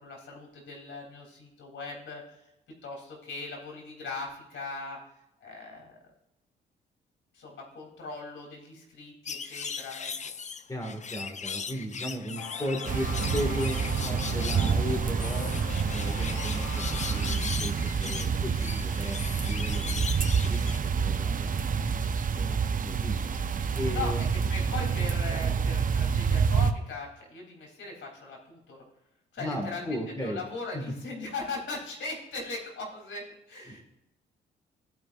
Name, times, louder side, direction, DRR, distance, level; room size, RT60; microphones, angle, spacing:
voice 1, 0.0-2.4 2.8-5.0 5.4-6.0 7.3-10.1 23.9-24.1 24.5-28.8 29.3-33.2 33.5-33.8, left 3 dB, 65° left, 0 dB, 3.1 m, -39 dB
sound 1, 9.2-20.8, left 5 dB, 35° left, 0.6 m, -38 dB
voice 2, 10.7-15.5 15.9-21.9 22.3-23.2 23.7-24.3 29.4-30.4 30.7-30.9 33.7-33.8, equal, 15° left, 2 dB, 1.8 m, -36 dB
sound 2, 12.4-17.4, left 9 dB, 85° left, 0.7 m, -41 dB
sound 3, 12.8-26.7, right 6 dB, 40° right, 0.7 m, -28 dB
15.5 x 5.1 x 2.5 m, 0.86 s
supercardioid pair, 55°, 21 cm